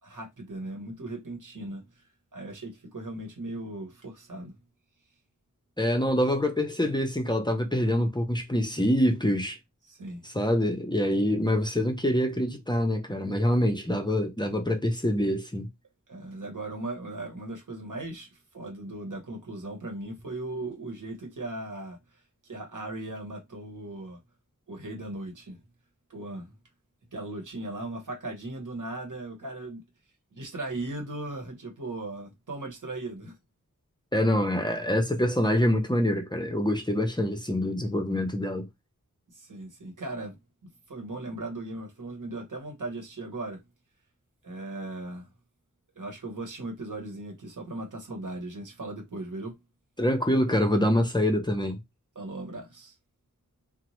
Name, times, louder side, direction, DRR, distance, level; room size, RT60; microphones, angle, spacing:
voice 1, 0.0-2.0 2.3-4.5 9.9-10.2 16.1-22.0 22.4-24.2 24.7-25.6 26.1-26.5 27.1-29.8 30.3-33.3 39.3-40.4 40.6-43.6 44.4-45.3 46.0-49.6 52.1-52.9, right 2 dB, 70° right, 1.0 m, -38 dB
voice 2, 5.8-9.6 10.2-15.7 34.1-38.7 50.0-51.8, left 1 dB, 15° left, 0.5 m, -25 dB
2.8 x 2.0 x 3.0 m
wide cardioid pair, 50°, 32 cm